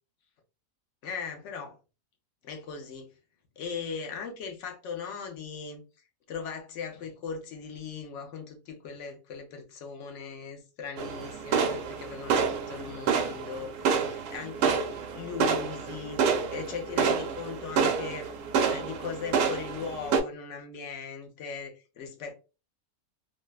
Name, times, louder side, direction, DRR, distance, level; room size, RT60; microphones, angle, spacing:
voice 1, 1.0-1.8 2.4-3.1 3.6-5.8 6.3-18.3 18.6-22.3, left 6 dB, 65° left, 0.8 m, -39 dB
sound 1, 11.0-20.2, right 6 dB, 85° right, 1.1 m, -28 dB
3.4 x 2.0 x 2.2 m
omnidirectional pair, 1.6 m